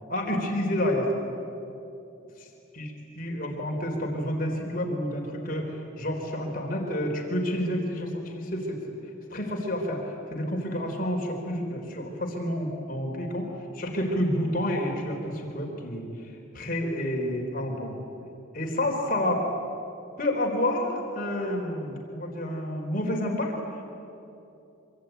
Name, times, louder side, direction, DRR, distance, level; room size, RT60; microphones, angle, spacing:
voice 1, 0.1-1.1 2.8-2.9 3.2-5.7 6.0-8.8 9.3-10.0 10.3-13.5 13.7-16.1 16.5-17.9 18.5-19.5 20.2-23.5, left 1 dB, 45° left, 1 dB, 3.7 m, -29 dB
25.5 x 25.0 x 9.2 m, 2.8 s
head